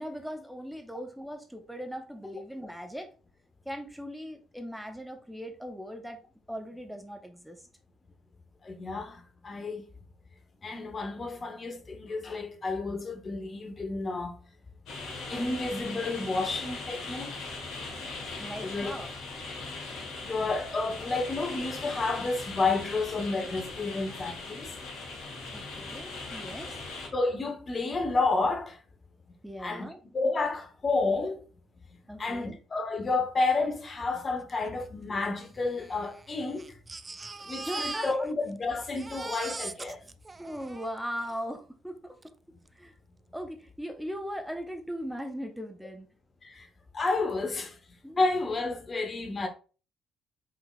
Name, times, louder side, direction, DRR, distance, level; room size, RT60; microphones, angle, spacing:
voice 1, 0.0-3.1 3.6-6.2 6.5-7.6 18.4-19.1 25.5-26.8 29.4-30.0 32.1-32.6 37.6-38.3 40.4-42.2 42.7-42.9 43.3-46.1 48.0-48.2, equal, ahead, 0.7 m, -39 dB
voice 2, 8.6-9.9 10.6-14.4 15.3-17.5 18.6-18.9 20.2-24.7 27.1-28.8 29.6-29.9 30.1-31.4 32.2-36.7 37.4-40.0 46.4-46.7 46.9-47.7 48.2-49.5, left 3 dB, 35° left, 0.9 m, -30 dB
sound 1, 14.9-27.1, left 3 dB, 60° left, 1.3 m, -39 dB
Crying sobbing, 34.5-34.6 34.8-34.9 35.7-38.6 38.8-41.4 42.2-42.3 42.7-42.8, right 3 dB, 25° right, 0.3 m, -40 dB
5.6 x 3.7 x 2.3 m
figure-of-eight pair, 45°, 0 cm